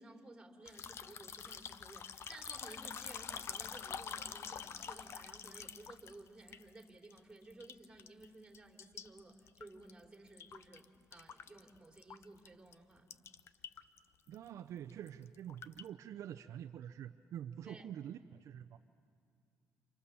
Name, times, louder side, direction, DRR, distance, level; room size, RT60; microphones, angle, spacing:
voice 1, 0.0-13.1 17.6-17.9, right 2 dB, 15° right, 2 dB, 3.2 m, -56 dB
sound 1, 0.6-7.2 7.5-8.3 8.5-10.8 11.1-12.5 12.7-12.8 13.1-14.0 14.3-14.5 14.9-15.9, left 7 dB, 55° left, 0.8 m, -46 dB
voice 2, 14.3-18.8, right 10 dB, 70° right, 8 dB, 0.7 m, -47 dB
29.5 x 27.5 x 7.1 m, 2.3 s
cardioid pair, 115°, 5 cm